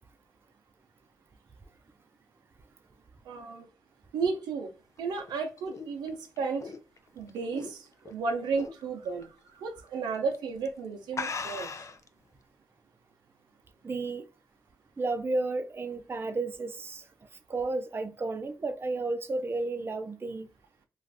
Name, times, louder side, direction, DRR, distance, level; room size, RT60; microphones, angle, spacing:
voice 1, 3.2-3.7 4.1-4.7 5.0-6.7 7.2-11.7, right 4 dB, 90° right, 0.5 m, -33 dB
sound 1, 5.0-8.1 8.5-8.8 9.2-9.3 10.1-10.4 10.7-10.8 11.1-12.1, left 5 dB, 45° left, 0.4 m, -38 dB
voice 2, 13.8-14.3 15.0-17.1 17.5-20.5, right 3 dB, 35° right, 0.5 m, -32 dB
2.4 x 2.4 x 3.3 m
cardioid pair, 55°, 7 cm